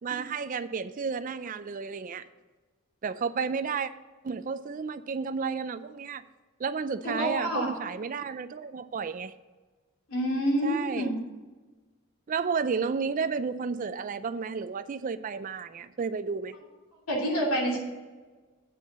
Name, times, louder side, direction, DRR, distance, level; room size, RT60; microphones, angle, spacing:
voice 1, 0.0-2.3 3.0-3.9 4.2-6.2 6.6-9.3 10.6-11.1 12.3-16.6, right 5 dB, 40° right, 14 dB, 0.4 m, -32 dB
voice 2, 7.2-7.7 10.1-11.2 17.1-17.8, equal, 90° left, -2 dB, 2.9 m, -27 dB
8.5 x 5.3 x 7.4 m, 1.3 s
head